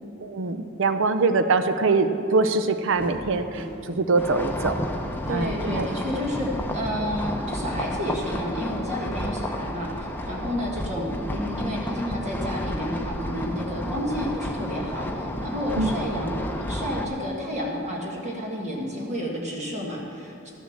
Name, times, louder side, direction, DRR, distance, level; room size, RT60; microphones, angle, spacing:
voice 1, 0.2-4.8 5.3-5.9 15.8-15.9, right 3 dB, 70° right, 9 dB, 0.6 m, -23 dB
sound 1, 2.9-6.5, right 1 dB, 5° right, 2.2 m, -39 dB
sound 2, 4.2-17.1, left 1 dB, 10° left, 0.8 m, -31 dB
voice 2, 5.3-20.5, equal, 35° right, -2 dB, 1.6 m, -31 dB
13.0 x 7.2 x 7.2 m, 2.8 s
head